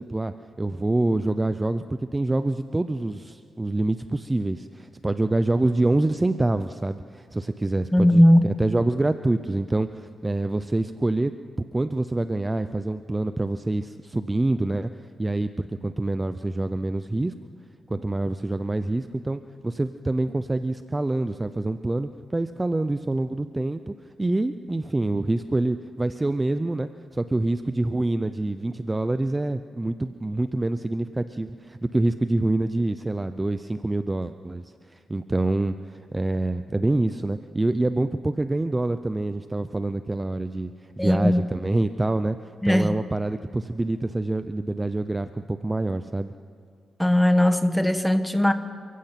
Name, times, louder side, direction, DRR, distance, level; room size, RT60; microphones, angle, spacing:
voice 1, 0.0-11.3 11.7-14.9 15.2-17.3 17.9-42.4 42.6-46.3, right 2 dB, 15° right, 11 dB, 0.6 m, -26 dB
voice 2, 7.9-8.5 41.0-41.4 42.6-42.9 47.0-48.5, left 1 dB, 5° left, 9 dB, 1.2 m, -18 dB
28.5 x 16.0 x 5.9 m, 2.3 s
cardioid pair, 105°, 0 cm